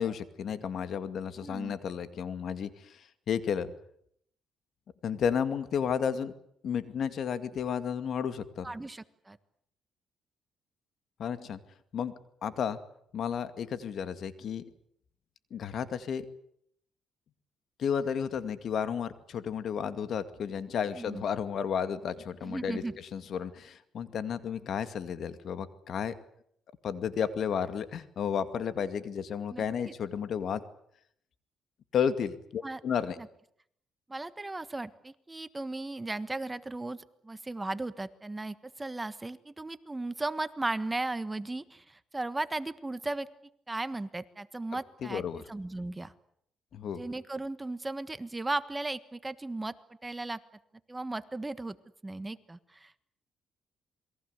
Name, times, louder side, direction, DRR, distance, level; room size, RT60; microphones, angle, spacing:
voice 1, 0.0-3.7 5.0-6.3 6.6-8.7 11.2-11.6 11.9-12.1 12.4-12.8 13.1-14.6 15.5-16.3 17.8-26.2 26.8-30.6 31.9-33.2 45.0-45.4 46.7-47.0, left 7 dB, 65° left, 12 dB, 2.2 m, -32 dB
voice 2, 1.4-1.8 8.6-9.4 21.0-21.2 22.4-22.9 29.5-29.9 32.6-32.8 33.2-33.3 34.1-43.3 43.7-45.2 45.5-46.1 46.9-49.7 50.0-50.4 50.9-51.8 52.0-53.0, right 2 dB, 15° right, 14 dB, 1.4 m, -36 dB
28.0 x 21.5 x 8.2 m, 0.70 s
cardioid pair, 90°, 0 cm